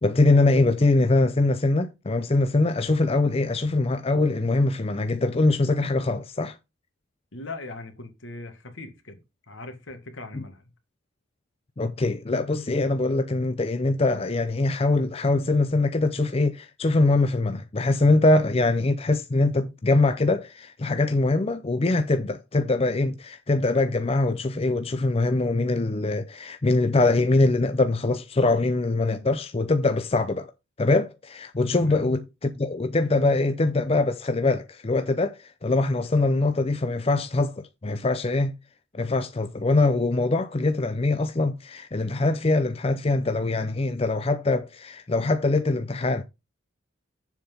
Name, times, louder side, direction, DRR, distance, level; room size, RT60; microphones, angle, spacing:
voice 1, 0.0-6.6 10.3-10.4 11.8-30.5 30.8-38.5 38.9-46.2, left 2 dB, 30° left, 0.5 m, -23 dB
voice 2, 7.3-9.2 9.5-10.6 31.8-32.0, left 2 dB, 70° left, 1.9 m, -40 dB
7.2 x 5.7 x 5.3 m
head